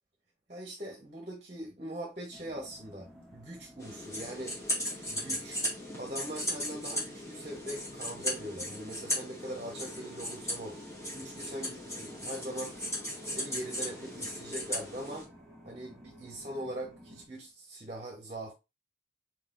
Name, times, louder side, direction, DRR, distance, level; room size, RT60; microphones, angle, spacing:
voice 1, 0.5-4.6 5.1-5.6 6.0-10.8 11.1-12.8 13.2-15.3 15.6-18.5, right 1 dB, 35° right, 1.1 m, -41 dB
sound 1, 2.3-17.3, equal, ahead, 1.1 m, -54 dB
sound 2, 3.8-15.2, left 1 dB, 15° left, 2.0 m, -37 dB
4.6 x 4.0 x 2.6 m
head